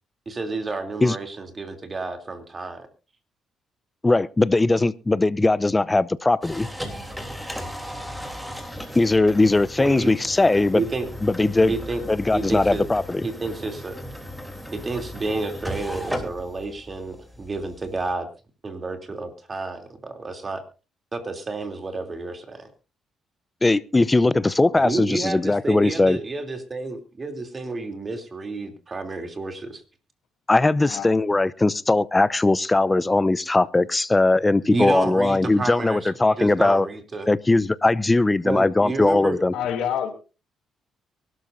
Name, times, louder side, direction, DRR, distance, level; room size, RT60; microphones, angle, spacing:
voice 1, 0.3-2.9 9.8-10.1 10.7-11.1 11.7-12.0 12.3-12.9 13.2-14.0 14.7-18.3 18.6-20.6 21.1-22.7 24.8-29.8 34.6-37.3 38.4-39.4, right 3 dB, 30° right, 6 dB, 3.1 m, -30 dB
voice 2, 4.0-6.7 8.9-10.8 11.2-11.7 12.1-13.3 23.6-26.2 30.5-36.9 37.3-39.5, left 2 dB, 20° left, 17 dB, 0.7 m, -20 dB
sound 1, 6.4-18.1, equal, ahead, 3.3 m, -36 dB
voice 3, 39.5-40.1, left 9 dB, 85° left, 5 dB, 2.9 m, -27 dB
24.0 x 12.5 x 2.7 m, 0.33 s
cardioid pair, 90°, 0 cm